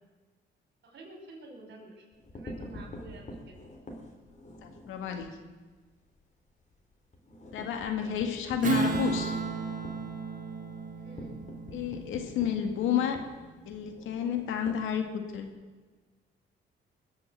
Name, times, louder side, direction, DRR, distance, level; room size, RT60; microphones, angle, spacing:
voice 1, 0.8-2.1 2.3-3.6 8.0-8.8 11.0-11.4, right 2 dB, 60° right, 1 dB, 5.1 m, -50 dB
sound 1, 2.1-5.3 5.7-5.9 6.2-6.3 6.6-15.5, left 1 dB, 35° left, 3.6 m, -45 dB
voice 2, 4.6-5.3 7.5-9.4 11.7-13.2 13.7-15.5, left 8 dB, 90° left, 6 dB, 2.0 m, -31 dB
Strum, 8.6-13.5, right 4 dB, 40° right, 2.6 m, -34 dB
21.0 x 7.8 x 7.6 m, 1.3 s
cardioid pair, 90°, 20 cm